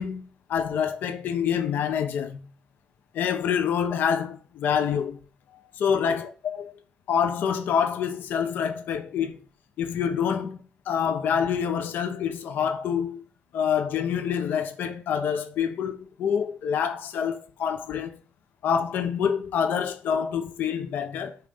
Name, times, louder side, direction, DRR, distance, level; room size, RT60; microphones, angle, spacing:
voice 1, 0.0-2.4 3.1-5.2 5.8-6.6 7.1-9.4 9.8-10.6 10.9-13.2 13.5-18.1 18.6-21.4, left 7 dB, 70° left, 1.2 m, -26 dB
9.4 x 3.9 x 7.2 m
cardioid pair, 150°, 3 cm